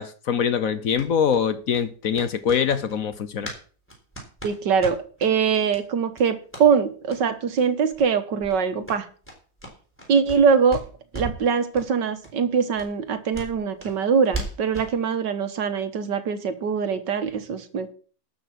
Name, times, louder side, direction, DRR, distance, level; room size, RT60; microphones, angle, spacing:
voice 1, 0.0-3.5, left 7 dB, 60° left, 1.1 m, -24 dB
sound 1, 0.9-3.6 3.9-5.3 5.7-5.8 6.1-6.7 7.0-7.2 7.5-7.6 7.9-8.1 8.4-10.4 10.7-11.4 11.7-11.9 12.2-12.3 12.7-14.9, right 2 dB, 5° left, 3.8 m, -37 dB
voice 2, 4.4-9.1 10.1-10.8 11.1-17.9, right 6 dB, 80° right, 1.9 m, -23 dB
12.5 x 5.9 x 7.5 m
omnidirectional pair, 1.9 m